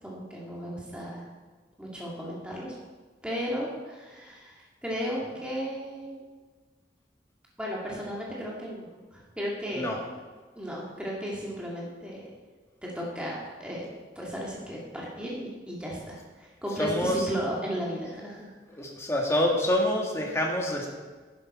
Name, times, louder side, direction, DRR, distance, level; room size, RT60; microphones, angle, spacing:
voice 1, 0.0-1.2 1.8-2.7 3.2-6.1 7.6-9.9 10.6-12.3 12.8-13.9 14.2-18.5, equal, 5° right, -5 dB, 2.1 m, -35 dB
voice 2, 16.8-17.3 18.7-20.9, left 1 dB, 15° left, -1 dB, 1.7 m, -26 dB
11.0 x 11.0 x 4.3 m, 1.4 s
head